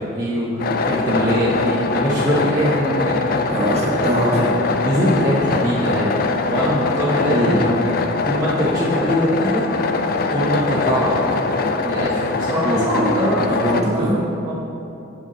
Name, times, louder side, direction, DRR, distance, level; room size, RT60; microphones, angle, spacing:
voice 1, 0.0-3.5 4.8-7.5 8.2-9.7 10.3-11.4 11.8-14.1 14.4-14.5, equal, 15° right, -10 dB, 1.0 m, -22 dB
sound 1, 0.6-13.8, left 3 dB, 45° left, 0.4 m, -22 dB
voice 2, 3.5-4.5 7.3-7.6 12.6-12.8 13.4-14.2, right 1 dB, 30° right, -5 dB, 1.5 m, -21 dB
8.4 x 6.9 x 3.8 m, 2.8 s
head